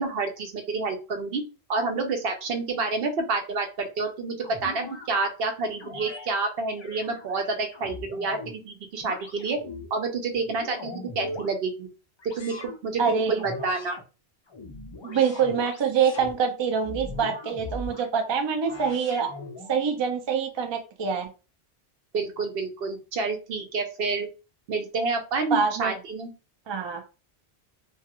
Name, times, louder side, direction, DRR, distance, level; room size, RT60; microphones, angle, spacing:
voice 1, 0.0-1.4 1.7-9.6 9.9-11.9 12.4-14.0 22.1-24.3 24.7-26.3, right 3 dB, 65° right, 4 dB, 0.8 m, -29 dB
sound 1, 4.4-5.1 5.8-6.3 6.8-8.6 9.0-9.9 10.4-11.5 12.2-12.8 13.4-14.0 14.5-16.3 16.8-18.1 18.6-19.8, left 2 dB, 45° left, 0.3 m, -40 dB
voice 2, 13.0-13.4 15.0-19.3 19.7-21.3 25.5-25.9 26.7-27.0, right 6 dB, 45° right, 4 dB, 0.3 m, -25 dB
2.4 x 2.3 x 2.8 m, 0.32 s
omnidirectional pair, 1.1 m